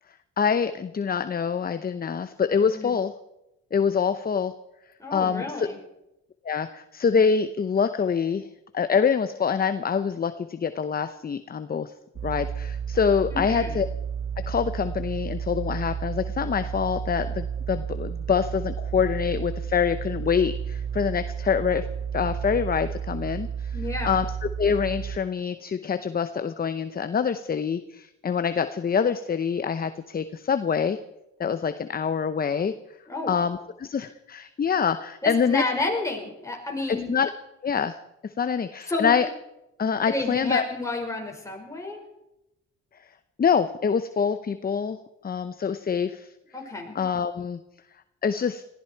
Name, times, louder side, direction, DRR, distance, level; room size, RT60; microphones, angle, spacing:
voice 1, 0.4-3.1 3.7-4.5 5.1-5.7 6.4-8.5 8.7-11.9 12.2-13.8 14.4-21.9 22.1-23.8 24.0-31.0 31.4-32.7 33.3-35.6 36.9-37.3 37.6-38.0 38.2-39.3 39.8-40.6 43.4-45.0 45.2-46.3 46.9-47.6 48.2-48.6, left 6 dB, 30° left, 11 dB, 0.8 m, -25 dB
voice 2, 5.0-5.8 13.3-13.8 23.7-24.2 33.1-33.4 35.2-37.1 38.9-39.1 40.0-42.0 46.5-47.0, left 2 dB, 10° left, 1 dB, 5.2 m, -30 dB
sound 1, 12.2-25.2, right 7 dB, 45° right, 0.6 m, -32 dB
20.0 x 15.0 x 4.6 m, 0.88 s
cardioid pair, 90°, 30 cm